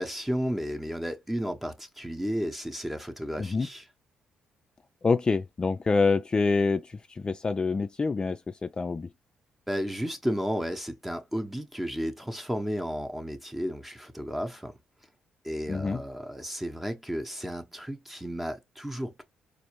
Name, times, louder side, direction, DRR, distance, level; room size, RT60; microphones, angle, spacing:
voice 1, 0.0-3.8 9.7-14.7 15.4-19.2, equal, 5° right, 0.9 m, -33 dB
voice 2, 3.4-3.7 5.0-9.1 15.7-16.0, left 4 dB, 30° left, 0.4 m, -26 dB
4.2 x 2.6 x 3.0 m
supercardioid pair, 65°, 3 cm